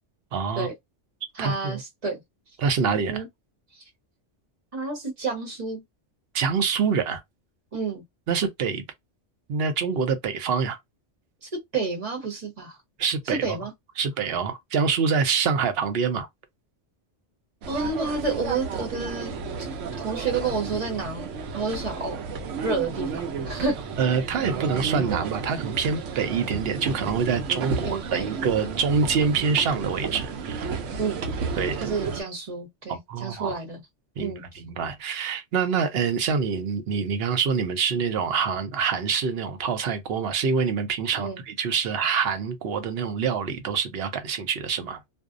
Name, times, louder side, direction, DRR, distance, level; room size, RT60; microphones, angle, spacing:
voice 1, 0.3-0.7 1.4-1.8 2.6-3.2 6.3-7.2 8.3-8.8 9.5-10.8 13.0-13.6 14.0-16.3 24.0-30.8 31.6-31.9 32.9-33.6 34.2-45.0, right 6 dB, 65° right, 0.8 m, -26 dB
voice 2, 1.3-2.2 3.1-3.3 3.7-3.8 4.7-5.8 7.7-8.0 11.4-12.8 13.2-13.7 17.7-19.3 20.0-22.2 22.6-23.8 27.8-28.3 31.0-31.2 31.5-33.8 34.2-34.6 41.2-41.4, right 4 dB, 35° right, 0.9 m, -30 dB
sound 1, 17.6-32.2, right 5 dB, 90° right, 0.9 m, -32 dB
2.6 x 2.0 x 2.4 m
omnidirectional pair, 1.2 m